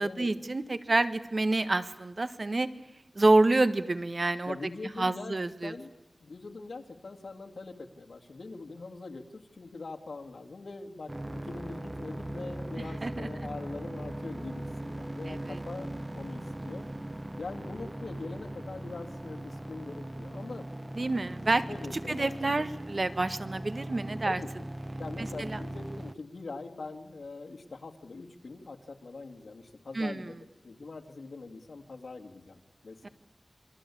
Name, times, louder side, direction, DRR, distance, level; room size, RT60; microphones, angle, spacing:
voice 1, 0.0-2.7 3.1-4.5 5.0-5.7 13.0-13.3 15.3-15.6 20.9-21.6 22.1-24.4 25.2-25.6 29.9-30.3 33.0-33.1, right 2 dB, 55° right, 12 dB, 1.6 m, -28 dB
voice 2, 4.5-5.3 5.6-5.9 6.2-16.8 17.4-20.7 21.5-22.6 24.2-24.5 25.0-33.1, left 3 dB, 85° left, 4 dB, 2.3 m, -43 dB
sound 1, 11.1-26.1, right 1 dB, 25° right, 1.1 m, -39 dB
28.5 x 22.5 x 8.6 m, 0.91 s
wide cardioid pair, 65°, 0 cm